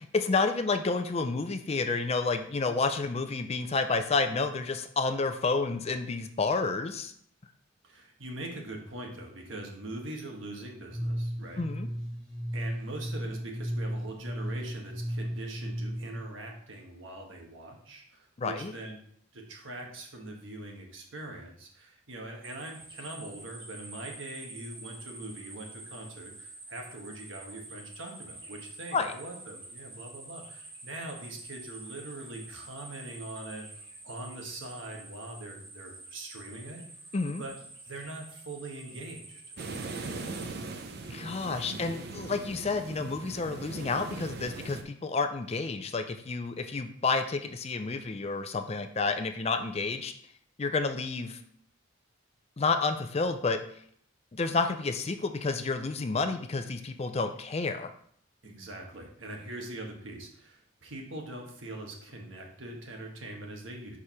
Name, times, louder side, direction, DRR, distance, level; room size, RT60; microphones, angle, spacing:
voice 1, 0.1-7.1 11.6-11.9 18.4-18.7 28.9-29.1 37.1-37.4 41.1-50.1 50.6-51.4 52.6-53.6 54.3-57.9, left 4 dB, 30° left, 8 dB, 0.4 m, -30 dB
voice 2, 7.8-11.6 12.5-19.0 19.3-33.6 34.0-36.8 37.4-37.6 37.8-39.4 58.4-64.0, right 2 dB, 75° right, 1 dB, 1.4 m, -42 dB
sound 1, 10.9-16.2, equal, 5° left, 1.9 m, -35 dB
sound 2, 22.4-40.4, right 2 dB, 25° right, 1.3 m, -48 dB
sound 3, 39.6-44.8, right 3 dB, 55° right, 0.6 m, -40 dB
4.9 x 4.6 x 5.6 m, 0.62 s
head